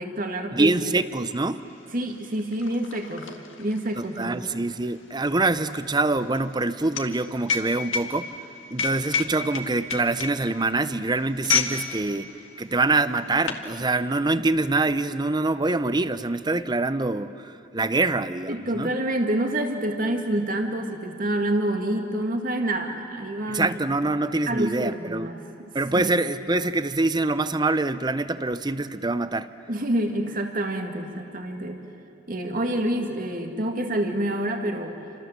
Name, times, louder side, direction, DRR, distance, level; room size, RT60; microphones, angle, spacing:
voice 1, 0.0-0.8 1.9-4.4 18.5-23.8 24.5-26.1 29.7-31.8 32.3-35.0, right 1 dB, 45° right, 4 dB, 2.2 m, -27 dB
voice 2, 0.5-1.6 4.0-8.3 8.7-12.3 12.6-18.9 23.5-25.3 25.7-29.5, right 2 dB, 20° right, 13 dB, 0.7 m, -25 dB
sound 1, 1.5-1.6 1.8-11.8 12.1-12.4 13.0-13.7, left 5 dB, 80° left, 2.0 m, -30 dB
29.0 x 26.5 x 7.5 m, 2.7 s
head